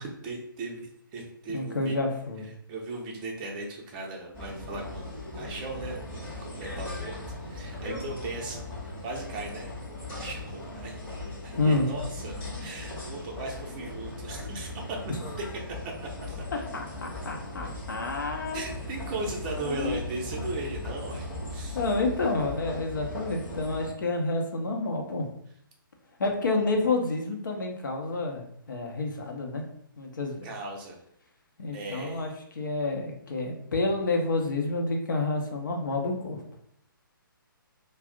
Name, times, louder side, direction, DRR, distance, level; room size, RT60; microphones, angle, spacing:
voice 1, 0.0-2.0 2.7-7.2 7.5-8.6 9.0-9.7 10.1-11.0 11.4-15.3 16.2-16.4 18.5-21.8 30.4-31.0 31.7-32.3, right 2 dB, 25° right, 0 dB, 0.5 m, -37 dB
voice 2, 1.5-2.5 11.6-11.9 15.2-15.3 16.7-18.6 19.6-20.0 21.7-25.3 26.2-29.6 30.0-30.5 31.6-32.3 32.6-36.4, left 3 dB, 60° left, 1 dB, 0.6 m, -29 dB
sound 1, 4.3-23.9, left 2 dB, 15° left, 0.7 m, -38 dB
2.4 x 2.0 x 3.6 m, 0.70 s
figure-of-eight pair, 135°, 12 cm